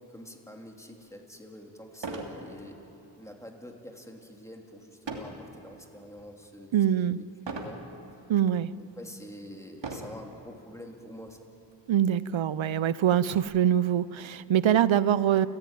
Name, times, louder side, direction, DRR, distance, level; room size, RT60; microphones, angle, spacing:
voice 1, 0.1-2.8 3.2-7.8 8.8-11.5, equal, 5° left, 1 dB, 3.3 m, -46 dB
sound 1, 1.0-1.1 1.9-2.4 2.8-3.1 5.1-5.4 6.0-6.4 7.5-7.8 8.6-8.7 9.8-10.2 11.2-11.4 11.7-11.8 12.3-13.4, right 3 dB, 70° right, 3.0 m, -38 dB
voice 2, 6.7-7.2 8.3-8.7 11.9-15.5, right 10 dB, 85° right, 17 dB, 0.6 m, -24 dB
29.5 x 15.5 x 9.2 m, 2.8 s
wide cardioid pair, 75°, 45 cm